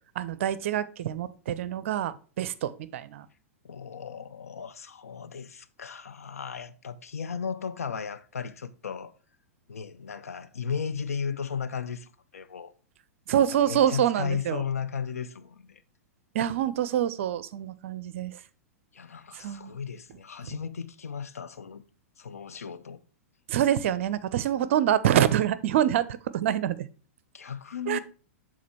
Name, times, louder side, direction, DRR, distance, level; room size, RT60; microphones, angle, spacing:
voice 1, 0.2-3.3 13.3-14.6 16.3-18.4 19.4-19.8 23.5-26.1 26.3-26.9 27.9-28.0, right 10 dB, 60° right, 0.5 m, -26 dB
voice 2, 3.6-9.1 9.7-12.7 13.4-15.8 18.9-21.8 22.2-23.0 27.3-28.0, left 6 dB, 80° left, 0.6 m, -35 dB
7.3 x 3.7 x 4.4 m
figure-of-eight pair, 105°, 8 cm